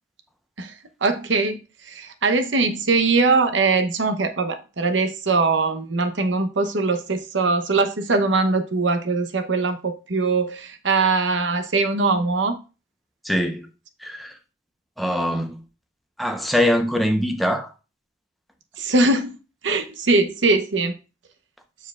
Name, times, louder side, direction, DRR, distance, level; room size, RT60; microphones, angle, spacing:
voice 1, 1.0-12.6 18.8-19.4 19.6-21.0, right 3 dB, 75° right, 0.9 m, -21 dB
voice 2, 13.2-13.7 14.0-14.4 15.0-15.6 16.2-17.7, equal, ahead, 0.8 m, -23 dB
7.2 x 6.9 x 2.4 m
head